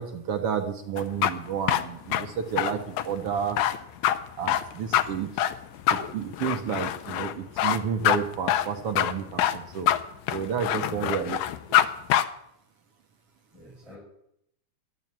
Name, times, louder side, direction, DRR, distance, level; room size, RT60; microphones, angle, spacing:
voice 1, 0.0-3.6 4.4-5.4 5.9-9.9 10.3-11.4 11.7-11.8, right 7 dB, 65° right, 5 dB, 1.6 m, -31 dB
sound 1, 1.0-11.9 12.1-12.2, left 12 dB, 75° left, 2.0 m, -25 dB
voice 2, 10.8-11.2 13.5-14.0, equal, 10° right, -5 dB, 5.7 m, -45 dB
12.0 x 10.5 x 8.6 m, 0.76 s
omnidirectional pair, 3.6 m